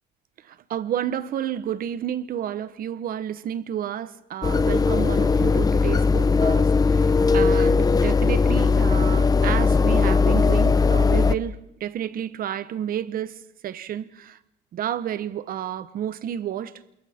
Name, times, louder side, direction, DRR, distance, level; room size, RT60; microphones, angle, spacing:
voice 1, 0.5-14.4 14.7-16.7, right 10 dB, 60° right, 1.2 m, -31 dB
sound 1, 4.4-11.3, left 4 dB, 20° left, 0.8 m, -19 dB
29.0 x 28.0 x 3.7 m
cardioid pair, 110°, 17 cm